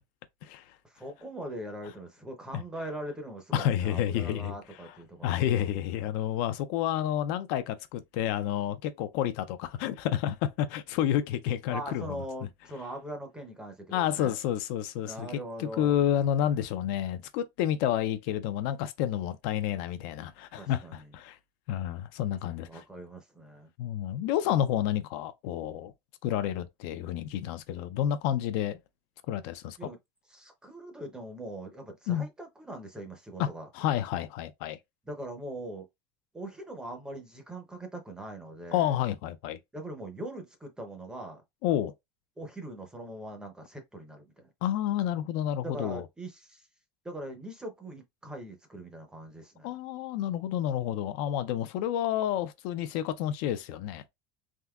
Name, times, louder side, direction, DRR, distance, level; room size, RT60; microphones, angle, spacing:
voice 1, 0.8-5.5 11.7-14.4 15.0-15.9 20.5-21.1 22.7-23.7 29.8-30.0 30.3-33.7 35.1-35.9 36.3-39.0 39.7-41.4 42.4-44.5 45.6-46.7 47.0-49.7, right 1 dB, 5° right, 0.6 m, -41 dB
voice 2, 3.5-4.5 5.2-12.2 13.9-21.4 21.7-22.8 23.8-25.9 26.2-28.8 29.3-29.8 32.1-32.3 33.4-33.5 33.7-34.8 38.7-39.6 41.6-41.9 44.6-46.0 49.6-54.0, left 11 dB, 55° left, 0.4 m, -30 dB
3.6 x 2.6 x 2.3 m
cardioid pair, 170°, 13 cm